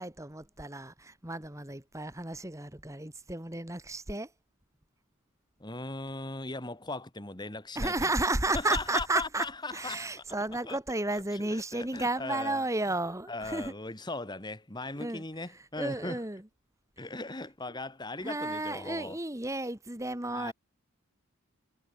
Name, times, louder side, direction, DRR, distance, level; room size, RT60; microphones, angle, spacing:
voice 1, 0.0-4.3 7.7-9.4 9.7-13.7 15.0-15.2 15.8-16.5 17.7-17.8 18.2-20.5, right 2 dB, 15° right, 1.6 m, -33 dB
voice 2, 5.6-8.1 8.5-10.1 10.7-10.8 11.3-12.6 13.3-16.2 17.0-19.2 20.3-20.5, left 2 dB, 20° left, 1.7 m, -38 dB
head